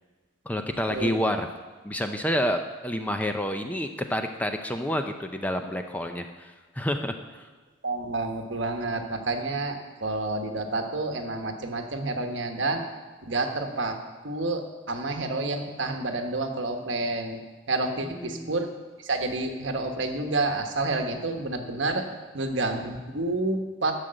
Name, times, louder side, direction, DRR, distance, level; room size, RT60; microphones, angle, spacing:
voice 1, 0.5-1.5 1.8-7.5 18.0-18.5, equal, 10° left, 6 dB, 0.5 m, -29 dB
voice 2, 7.8-12.8 13.2-14.0 14.2-17.4 17.7-18.7 19.0-22.0 22.3-23.9, right 2 dB, 65° right, 5 dB, 1.3 m, -29 dB
11.0 x 6.6 x 7.7 m, 1.3 s
head